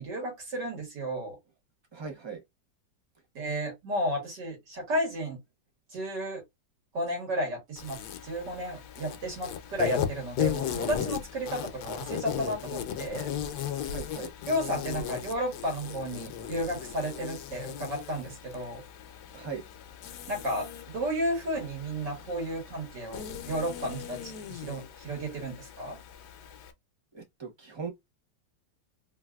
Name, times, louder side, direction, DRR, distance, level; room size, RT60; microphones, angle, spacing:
voice 1, 0.0-1.4 3.4-5.4 5.9-6.4 6.9-13.3 14.5-18.8 20.3-26.0, equal, 70° right, 2.3 m, -33 dB
voice 2, 1.9-2.4 13.8-14.3 19.3-19.6 27.1-27.9, right 5 dB, 45° right, 0.3 m, -39 dB
Insect, 7.8-26.7, left 9 dB, 70° left, 1.1 m, -37 dB
4.0 x 2.5 x 2.3 m
omnidirectional pair, 2.0 m